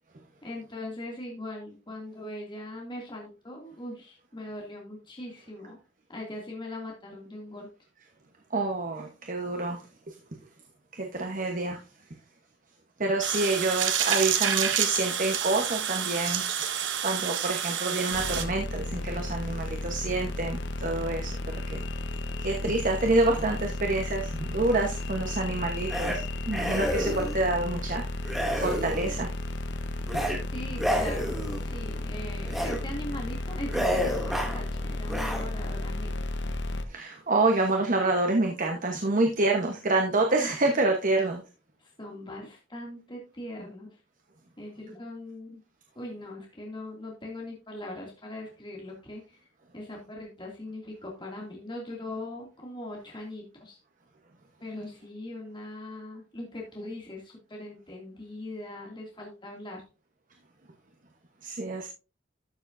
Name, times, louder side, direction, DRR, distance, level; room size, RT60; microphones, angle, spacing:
voice 1, 0.4-5.8 6.1-7.7 30.5-36.1 41.8-44.0 44.6-45.6 45.9-49.4 49.7-53.8 54.6-59.8, left 1 dB, 25° left, -1 dB, 2.5 m, -40 dB
voice 2, 8.5-9.8 10.1-10.2 10.9-11.8 13.0-16.5 17.0-21.8 22.4-26.2 26.5-28.0 28.6-29.3 36.9-41.4 61.4-61.9, right 2 dB, 45° right, 3 dB, 1.2 m, -27 dB
sound 1, 13.2-18.4, right 9 dB, 70° right, 1.2 m, -28 dB
sound 2, 18.1-36.8, left 1 dB, 65° left, 1.1 m, -33 dB
sound 3, 25.9-26.2 26.5-27.4 28.2-29.2 30.0-30.4 30.7-31.7 32.4-32.8 33.1-33.3 33.7-34.6 35.0-35.4, equal, ahead, 2.5 m, -29 dB
13.0 x 7.1 x 2.7 m, 0.31 s
head